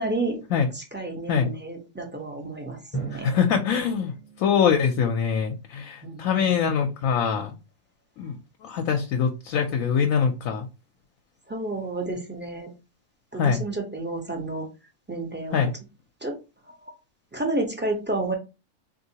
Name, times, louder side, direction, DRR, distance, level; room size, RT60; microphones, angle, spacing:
voice 1, 0.0-0.4 0.7-3.3 6.0-6.5 11.5-12.7 13.3-14.7 15.1-15.7 16.2-16.3 16.7-16.8 17.3-18.3, right 2 dB, 10° right, 1 dB, 0.6 m, -30 dB
Drum, 2.9-5.6, right 4 dB, 35° left, 0.6 m, -38 dB
voice 2, 3.1-4.1 4.4-7.6 8.2-8.4 8.6-10.7 13.4-13.6 15.5-15.7, left 7 dB, 80° left, 4 dB, 1.0 m, -23 dB
3.7 x 2.7 x 2.7 m, 0.28 s
omnidirectional pair, 1.4 m